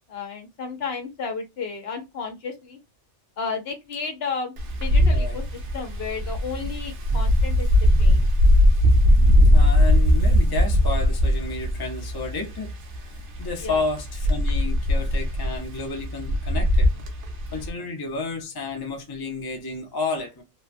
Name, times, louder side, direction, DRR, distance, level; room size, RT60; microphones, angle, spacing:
voice 1, 0.1-2.8 3.4-4.5 4.8-7.7 8.0-8.3 13.6-13.9, left 5 dB, 60° left, 0.9 m, -33 dB
Wind, 4.6-17.7, left 1 dB, 80° right, 1.1 m, -20 dB
voice 2, 5.0-5.4 7.1-7.2 9.5-12.7 13.0-17.1 17.5-20.4, left 3 dB, 25° left, 0.6 m, -31 dB
3.0 x 2.2 x 2.5 m
omnidirectional pair, 1.2 m